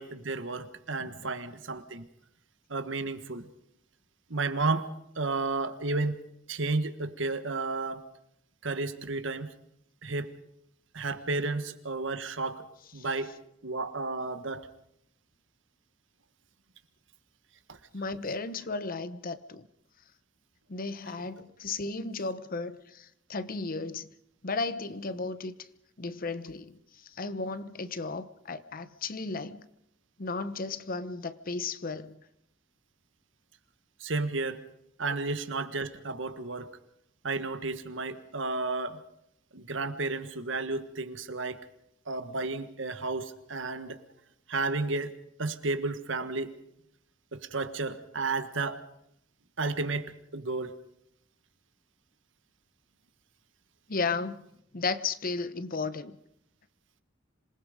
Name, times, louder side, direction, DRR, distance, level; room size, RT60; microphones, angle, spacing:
voice 1, 0.0-2.1 2.7-3.5 4.3-4.9 5.1-6.2 6.5-8.0 8.6-9.5 10.0-10.3 10.9-12.7 12.9-13.3 13.6-14.7 17.7-17.8 34.0-34.6 35.0-36.7 37.2-39.0 39.5-41.7 42.1-44.0 44.5-45.1 45.4-46.6 47.3-48.8 49.6-50.8, right 3 dB, 70° right, 10 dB, 1.5 m, -32 dB
voice 2, 17.9-19.7 20.7-24.1 24.4-25.5 26.0-26.8 27.1-29.7 30.2-32.2 53.9-54.4 54.7-56.2, left 3 dB, 45° left, 13 dB, 0.9 m, -34 dB
26.5 x 19.5 x 5.1 m, 0.76 s
head